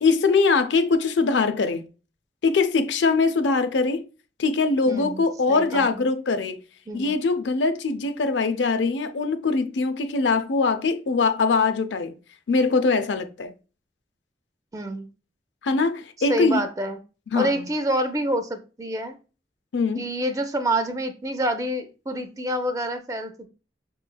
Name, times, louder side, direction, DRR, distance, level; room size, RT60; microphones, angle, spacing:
voice 1, 0.0-1.9 2.4-4.0 4.4-6.6 6.9-12.1 12.5-13.5 15.6-16.7 17.3-17.6 19.7-20.1, left 4 dB, 85° left, 0.5 m, -22 dB
voice 2, 4.9-6.0 6.9-7.1 14.7-15.1 16.2-17.0 17.3-19.1 20.0-23.5, right 1 dB, 20° right, 0.4 m, -27 dB
6.2 x 3.1 x 2.2 m
head